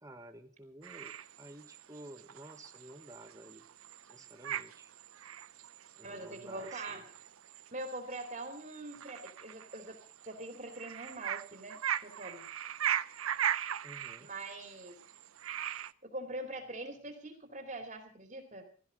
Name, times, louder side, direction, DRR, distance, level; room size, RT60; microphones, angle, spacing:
voice 1, 0.0-3.7 4.1-4.9 6.0-7.0 13.8-14.3, right 1 dB, 15° right, 7 dB, 1.3 m, -52 dB
sound 1, 0.8-15.9, right 10 dB, 90° right, 0.6 m, -40 dB
voice 2, 6.0-7.0 7.5-12.5 14.2-15.0 16.0-18.7, right 2 dB, 35° right, 4 dB, 2.6 m, -43 dB
17.0 x 13.0 x 5.1 m, 0.41 s
head